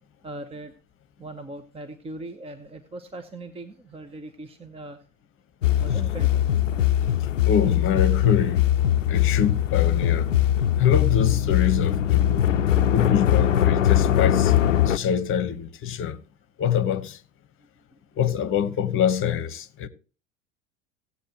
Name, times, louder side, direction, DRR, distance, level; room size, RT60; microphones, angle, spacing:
voice 1, 0.2-0.7 1.2-5.0 5.8-6.4 17.9-18.0, right 2 dB, 15° right, 1.0 m, -39 dB
sound 1, 5.6-15.0, left 11 dB, 80° left, 0.6 m, -21 dB
voice 2, 7.4-8.7 9.1-10.3 10.8-12.4 12.9-14.6 14.8-16.2 16.6-17.2 18.2-19.9, left 8 dB, 35° left, 1.1 m, -25 dB
17.5 x 8.3 x 2.9 m
figure-of-eight pair, 80°, 37 cm